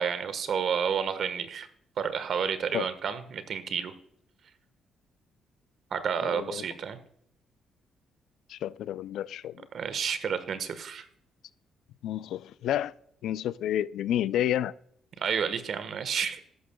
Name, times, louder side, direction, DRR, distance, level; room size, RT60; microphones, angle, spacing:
voice 1, 0.0-1.7 2.0-3.9 5.9-7.0 9.7-11.1 15.2-16.4, right 7 dB, 60° right, 1.3 m, -30 dB
voice 2, 6.2-6.6 8.5-9.7 12.0-12.9 13.2-14.7, left 11 dB, 80° left, 0.4 m, -30 dB
13.5 x 11.5 x 2.3 m
cardioid pair, 90°, 0 cm